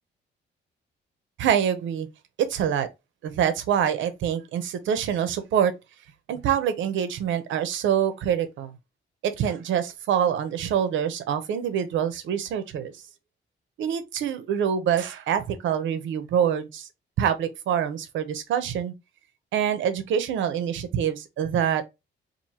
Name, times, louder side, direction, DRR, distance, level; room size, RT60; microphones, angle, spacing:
voice 1, 1.4-2.1 2.4-2.9 3.2-5.7 6.3-8.7 9.2-12.9 13.8-16.9 17.2-18.9 19.5-21.9, right 9 dB, 90° right, 0.7 m, -25 dB
4.5 x 2.6 x 2.8 m
cardioid pair, 150°, 19 cm